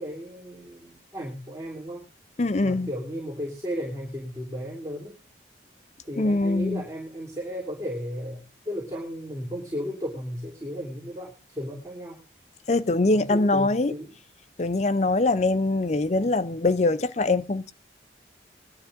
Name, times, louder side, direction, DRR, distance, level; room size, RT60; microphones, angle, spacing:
voice 1, 0.0-2.0 2.6-5.2 6.0-12.2 13.1-14.1, equal, 20° right, 3.2 m, -35 dB
voice 2, 2.4-2.9 6.2-6.8 12.7-13.9 14.6-17.7, left 2 dB, 40° left, 0.6 m, -23 dB
22.0 x 11.5 x 2.6 m
head